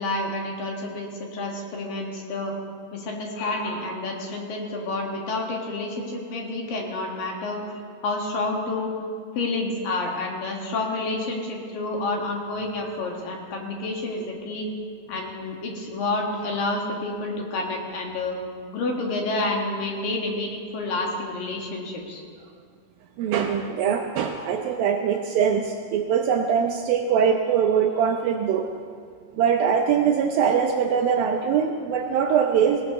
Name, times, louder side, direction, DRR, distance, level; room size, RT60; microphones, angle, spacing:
voice 1, 0.0-2.5 2.9-8.9 9.3-14.7 15.1-18.4 18.7-22.2, left 2 dB, 60° left, 0 dB, 3.2 m, -29 dB
voice 2, 23.2-28.7 29.3-32.9, right 7 dB, 80° right, 3 dB, 2.2 m, -22 dB
19.0 x 18.0 x 3.1 m, 2.1 s
omnidirectional pair, 4.8 m